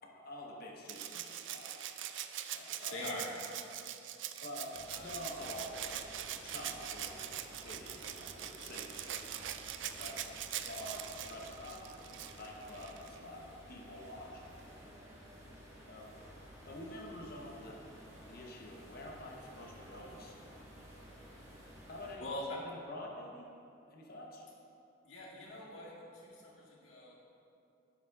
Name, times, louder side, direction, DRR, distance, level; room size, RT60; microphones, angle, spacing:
voice 1, 0.0-1.7 2.5-3.0 4.4-9.4 10.0-14.5 15.9-16.1 16.7-17.8 18.1-20.4 21.9-22.2 22.9-23.5 23.9-24.4, left 1 dB, 50° left, -1 dB, 0.9 m, -48 dB
Rattle (instrument), 0.9-13.2 14.6-14.7, right 10 dB, 70° right, 0.4 m, -43 dB
voice 2, 2.9-3.4 4.5-5.1 5.6-5.7 22.2-22.7 25.0-27.1, left 1 dB, 90° left, -4 dB, 1.7 m, -44 dB
sound 1, 4.7-22.1, equal, 15° right, 1.5 m, -54 dB
10.5 x 7.2 x 2.4 m, 2.7 s
head